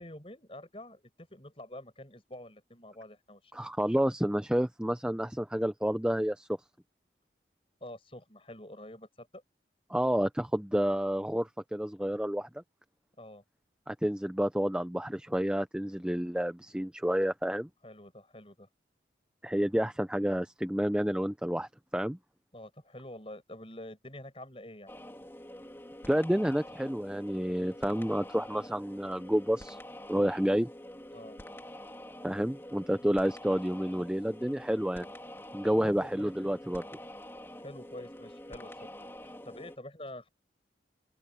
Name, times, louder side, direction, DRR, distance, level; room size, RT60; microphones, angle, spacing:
voice 1, 0.0-3.5 7.8-9.4 13.2-13.4 17.8-18.7 22.5-24.9 31.1-31.4 33.0-33.2 35.6-36.3 37.6-40.3, left 1 dB, 30° left, 6.7 m, -47 dB
voice 2, 3.5-6.5 9.9-12.5 13.9-17.7 19.4-22.2 26.1-29.8 30.1-30.7 32.2-35.1 35.5-36.8, equal, 5° right, 0.5 m, -29 dB
sound 1, 24.9-39.8, left 1 dB, 15° left, 3.6 m, -47 dB
open air
head